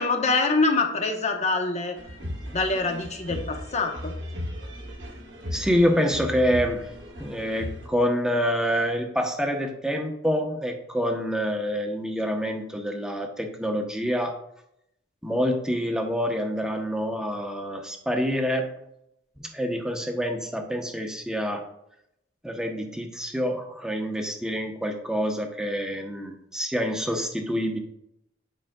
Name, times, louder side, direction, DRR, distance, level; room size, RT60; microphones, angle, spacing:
voice 1, 0.0-2.0 2.5-4.1, left 3 dB, 40° left, 4 dB, 0.9 m, -25 dB
sound 1, 2.0-7.9, left 1 dB, 75° right, 1.2 m, -37 dB
voice 2, 5.5-6.9 7.2-14.3 15.2-18.7 19.5-21.6 22.4-27.8, equal, 5° right, 2 dB, 0.8 m, -27 dB
10.0 x 4.9 x 2.3 m, 0.79 s
head